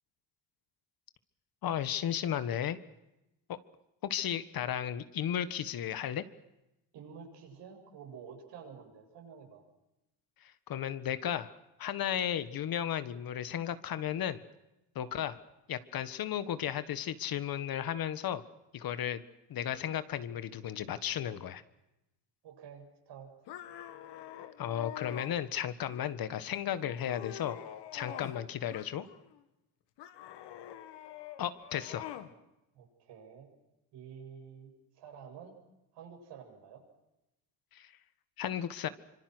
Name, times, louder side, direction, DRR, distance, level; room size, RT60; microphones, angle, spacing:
voice 1, 1.6-2.8 3.5-3.6 4.0-6.2 10.4-14.4 14.9-15.4 15.7-18.4 18.7-19.2 19.5-21.6 24.6-27.6 27.9-29.1 31.4-32.1 37.7-37.9 38.4-38.9, left 10 dB, 55° left, 13 dB, 1.6 m, -34 dB
voice 2, 6.9-9.6 15.0-15.2 22.4-23.3 28.1-28.3 32.7-33.5 33.9-35.6 35.9-36.8, right 7 dB, 80° right, 3 dB, 7.8 m, -50 dB
sound 1, 23.5-25.4 25.9-26.4 26.8-28.4 28.7-29.4 30.0-32.3, left 11 dB, 80° left, 2.2 m, -46 dB
25.5 x 25.5 x 6.3 m, 0.93 s
cardioid pair, 120°, 41 cm